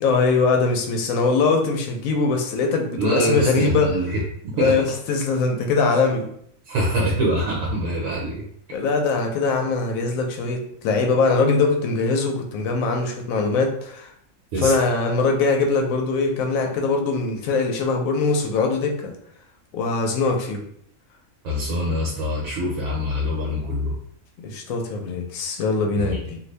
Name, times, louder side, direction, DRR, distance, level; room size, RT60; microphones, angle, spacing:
voice 1, 0.0-4.0 4.6-6.3 8.7-14.1 14.6-19.1 19.7-20.6 24.4-26.4, left 4 dB, 85° left, 3 dB, 1.0 m, -22 dB
voice 2, 3.0-4.7 6.7-8.4 14.5-14.8 21.4-24.0 25.9-26.2, equal, 75° right, -3 dB, 1.1 m, -24 dB
2.6 x 2.6 x 3.2 m, 0.68 s
omnidirectional pair, 1.4 m